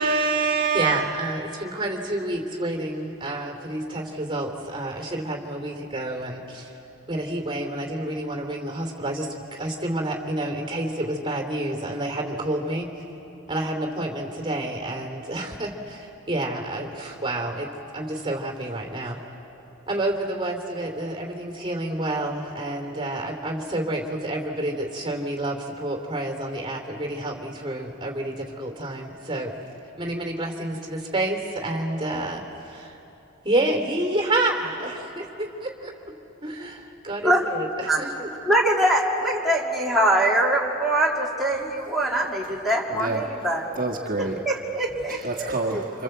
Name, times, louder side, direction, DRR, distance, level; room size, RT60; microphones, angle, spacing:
voice 1, 0.0-1.0 42.9-43.2 43.8-44.4 45.1-46.0, right 4 dB, 40° right, -1 dB, 1.7 m, -26 dB
voice 2, 0.7-6.7 7.1-12.9 13.5-17.7 17.9-19.2 19.9-29.5 30.0-33.0 33.4-36.1 36.4-38.3, right 1 dB, 20° right, 2 dB, 2.9 m, -29 dB
voice 3, 38.5-43.6 44.2-45.8, right 1 dB, ahead, -5 dB, 2.7 m, -23 dB
26.5 x 26.5 x 7.9 m, 3.0 s
head